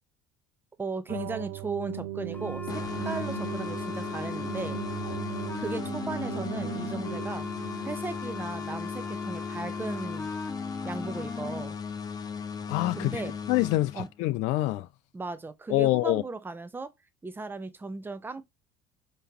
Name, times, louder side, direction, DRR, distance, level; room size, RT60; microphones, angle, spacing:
voice 1, 0.8-4.8 5.5-7.5 7.8-10.3 10.8-11.7 13.0-13.3 14.0-14.1 15.1-16.9 17.2-18.4, right 3 dB, 15° right, 0.7 m, -36 dB
sound 1, 1.1-8.2, right 14 dB, 60° right, 0.4 m, -38 dB
sound 2, 2.3-11.6, left 3 dB, 15° left, 1.1 m, -39 dB
sound 3, 2.7-14.4, left 6 dB, 30° left, 0.8 m, -37 dB
voice 2, 12.7-13.2 13.5-14.9 15.7-16.2, left 17 dB, 65° left, 0.4 m, -26 dB
4.9 x 3.0 x 2.8 m
hypercardioid pair, 75°, 13 cm